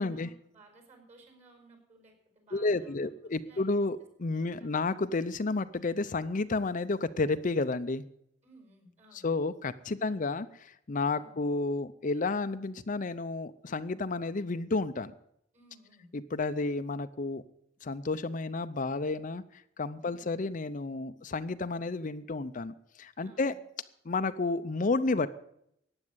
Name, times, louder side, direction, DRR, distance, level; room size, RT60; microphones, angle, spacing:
voice 1, 0.0-3.9 4.3-4.8 8.4-9.3 9.9-10.2 11.1-11.4 15.5-16.1 20.0-20.3 23.2-23.5, right 2 dB, 40° right, 4 dB, 5.4 m, -58 dB
voice 2, 2.5-8.0 9.1-15.1 16.1-17.4 17.8-23.5 24.0-25.3, left 3 dB, 40° left, 12 dB, 0.6 m, -31 dB
15.0 x 9.8 x 7.9 m, 0.74 s
head